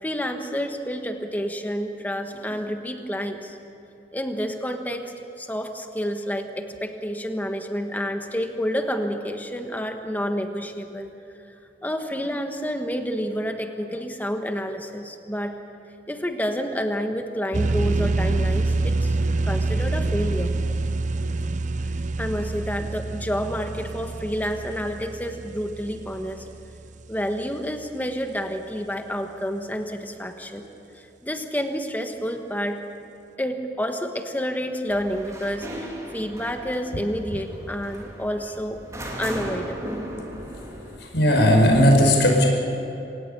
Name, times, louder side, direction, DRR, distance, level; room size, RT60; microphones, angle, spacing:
voice 1, 0.0-3.6 4.1-11.1 11.8-15.6 16.1-19.2 19.4-20.5 21.8-26.5 27.1-30.7 30.9-32.8 33.4-38.8 39.2-40.0, equal, 10° left, 5 dB, 1.5 m, -29 dB
sound 1, 17.5-27.0, right 2 dB, 45° right, 0.7 m, -26 dB
sound 2, 34.9-41.0, equal, 20° right, 3.1 m, -36 dB
voice 2, 41.0-42.4, equal, 80° left, 0 dB, 5.4 m, -17 dB
26.5 x 18.0 x 6.9 m, 3.0 s
head